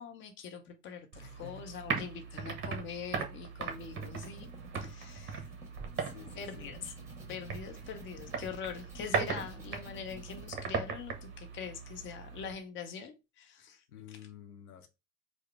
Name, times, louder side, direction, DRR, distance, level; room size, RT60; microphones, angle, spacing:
voice 1, 0.0-4.5 4.8-5.4 6.3-6.9 7.3-14.2, left 6 dB, 25° left, 0.7 m, -43 dB
sound 1, 1.1-12.5, right 5 dB, 25° right, 0.9 m, -39 dB
voice 2, 1.2-1.7 5.4-5.5 6.0-6.7 13.9-14.9, left 9 dB, 75° left, 0.7 m, -51 dB
sound 2, 3.5-10.5, right 1 dB, 5° right, 1.4 m, -52 dB
4.7 x 2.1 x 3.4 m
figure-of-eight pair, 80°, 44 cm